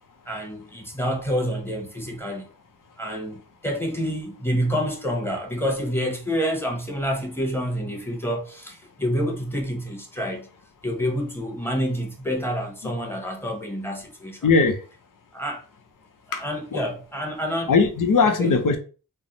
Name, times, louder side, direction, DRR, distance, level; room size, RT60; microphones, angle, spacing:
voice 1, 0.3-2.5 3.0-10.5 10.8-14.5 15.3-15.6 16.4-17.7 18.4-18.6, equal, 5° left, 1.1 m, -28 dB
voice 2, 14.4-14.8 16.3-16.4 16.7-16.8 17.7-18.8, left 4 dB, 65° left, 0.7 m, -19 dB
3.3 x 2.1 x 4.0 m
cardioid pair, 70°, 35 cm